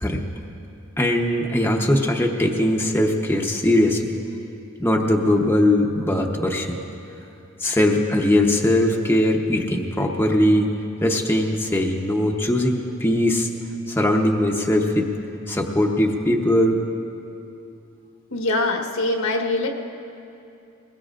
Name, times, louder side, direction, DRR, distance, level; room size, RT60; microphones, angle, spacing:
voice 1, 1.0-4.1 4.8-6.8 7.6-10.7 11.0-13.5 13.9-15.1 15.5-16.8, left 1 dB, 10° left, 0 dB, 0.9 m, -20 dB
voice 2, 18.3-19.7, left 2 dB, 80° left, 1 dB, 1.4 m, -23 dB
21.5 x 21.0 x 2.5 m, 2.7 s
head